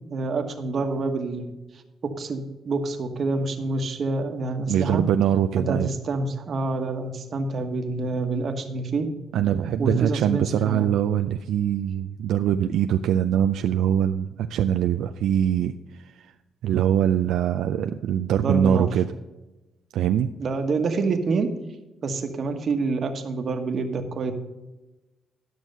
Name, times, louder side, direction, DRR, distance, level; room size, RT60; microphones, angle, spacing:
voice 1, 0.1-1.8 2.2-5.0 5.6-9.1 9.8-10.9 18.3-18.9 20.4-21.5 22.0-24.3, right 3 dB, 50° right, 6 dB, 1.2 m, -27 dB
voice 2, 4.7-5.9 9.3-16.3 16.6-19.1 19.9-20.3, right 10 dB, 80° right, 7 dB, 0.4 m, -23 dB
11.0 x 6.2 x 5.4 m, 1.1 s
cardioid pair, 90°, 0 cm